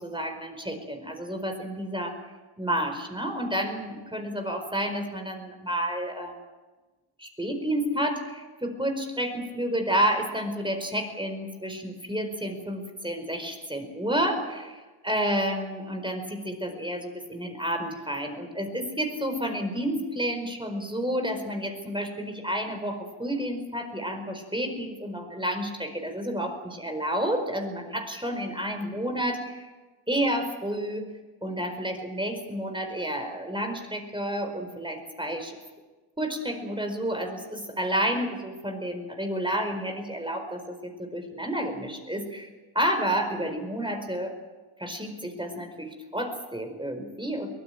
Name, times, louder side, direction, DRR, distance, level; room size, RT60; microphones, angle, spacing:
voice 1, 0.0-2.2 2.6-6.4 7.2-29.7 30.1-31.1 31.4-35.6 36.2-42.5 42.7-44.3 44.8-47.5, equal, 10° right, 5 dB, 4.7 m, -30 dB
23.0 x 16.0 x 9.2 m, 1.2 s
cardioid pair, 70°, 49 cm